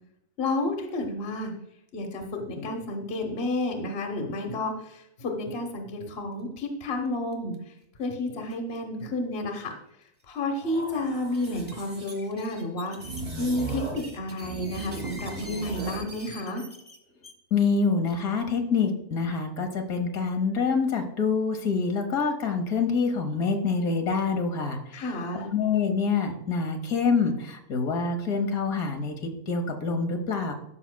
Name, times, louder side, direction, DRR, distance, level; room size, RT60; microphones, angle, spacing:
voice 1, 0.4-1.5 1.9-7.7 8.0-9.7 10.3-13.0 13.4-16.6 24.9-25.5, left 2 dB, 45° left, 3 dB, 1.3 m, -31 dB
sound 1, 7.3-7.5 7.8-7.9 8.5-8.8 9.6-9.7 10.2-10.3 11.2-11.7 12.1-17.3 18.0-18.4, right 1 dB, 10° right, 1.1 m, -46 dB
sound 2, 10.6-12.1 13.0-14.1 14.4-16.1, right 2 dB, 70° right, 3.6 m, -37 dB
voice 2, 17.5-25.0 25.3-30.5, left 5 dB, 70° left, 5 dB, 1.5 m, -26 dB
13.5 x 5.7 x 2.2 m, 0.81 s
omnidirectional pair, 1.6 m